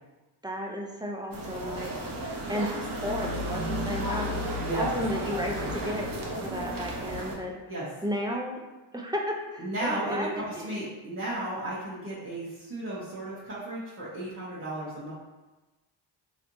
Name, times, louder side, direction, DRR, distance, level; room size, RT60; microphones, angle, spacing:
voice 1, 0.4-2.0 2.5-7.6 8.0-8.6 8.9-10.8, equal, 10° right, 0 dB, 0.5 m, -34 dB
sound 1, 1.3-7.4, equal, 45° right, 0.9 m, -33 dB
voice 2, 4.6-4.9 7.7-7.9 9.6-15.1, right 1 dB, 30° right, -10 dB, 1.3 m, -34 dB
3.2 x 3.0 x 2.7 m, 1.1 s
cardioid pair, 65°, 46 cm